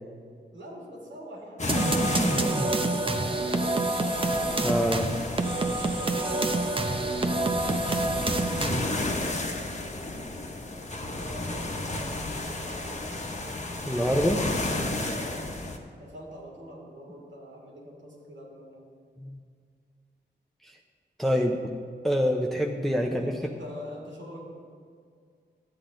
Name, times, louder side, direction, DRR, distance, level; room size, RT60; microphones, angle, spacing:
voice 1, 0.5-4.2 6.0-10.5 11.0-13.6 14.1-15.4 16.0-18.8 23.0-24.5, equal, 90° right, -4 dB, 2.9 m, -44 dB
sound 1, 1.6-15.8, left 2 dB, 40° left, 1.2 m, -33 dB
sound 2, 1.7-9.1, right 2 dB, 30° right, 0.8 m, -27 dB
voice 2, 4.6-5.1 13.9-14.4 19.2-19.3 20.6-20.7 21.2-21.6 22.0-23.3, equal, ahead, 0 dB, 0.8 m, -25 dB
12.5 x 8.5 x 3.9 m, 2.1 s
cardioid pair, 60°, 19 cm